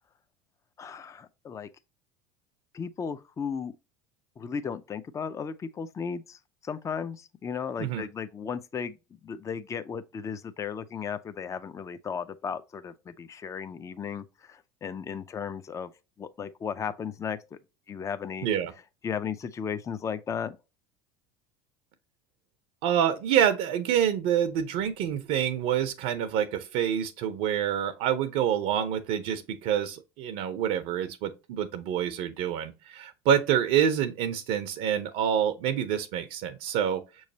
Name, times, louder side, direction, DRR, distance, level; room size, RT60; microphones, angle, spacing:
voice 1, 0.8-1.7 2.7-3.7 4.4-9.0 9.2-15.9 16.2-17.6 17.9-18.5 19.0-20.6, left 6 dB, 25° left, 0.5 m, -35 dB
voice 2, 22.8-37.0, right 9 dB, 65° right, 0.6 m, -27 dB
6.3 x 3.1 x 2.7 m
hypercardioid pair, 85°, 13 cm